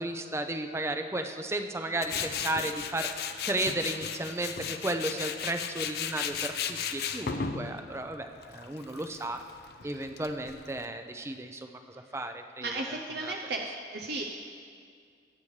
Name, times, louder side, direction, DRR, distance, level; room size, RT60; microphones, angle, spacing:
voice 1, 0.0-9.4 9.8-12.7 13.2-13.3, right 1 dB, 15° right, 6 dB, 0.6 m, -34 dB
Tools, 2.0-10.9, left 7 dB, 60° left, 0.6 m, -36 dB
voice 2, 12.6-14.2, right 2 dB, 65° right, 1 dB, 0.7 m, -35 dB
20.5 x 8.6 x 3.3 m, 2.2 s
head